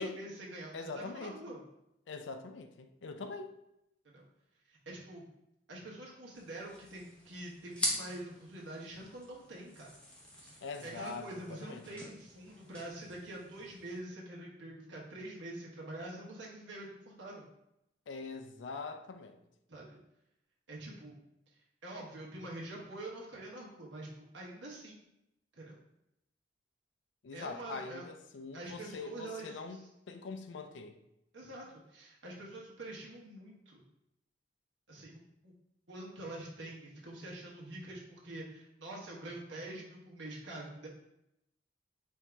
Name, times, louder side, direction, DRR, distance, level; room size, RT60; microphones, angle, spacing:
voice 1, 0.0-1.6 4.0-4.2 4.7-5.2 5.7-9.9 10.4-10.6 10.8-17.4 19.7-20.0 20.7-21.2 21.8-25.0 25.6-25.8 27.3-28.0 28.5-29.6 31.3-33.8 34.9-35.5 35.9-40.9, right 1 dB, 85° right, -3 dB, 1.2 m, -46 dB
voice 2, 0.7-1.4 2.1-3.5 10.6-12.0 18.1-19.4 27.2-31.0, left 4 dB, 75° left, 7 dB, 0.4 m, -43 dB
sound 1, 6.3-14.0, equal, 5° left, 0.9 m, -43 dB
4.6 x 2.7 x 3.4 m, 0.84 s
head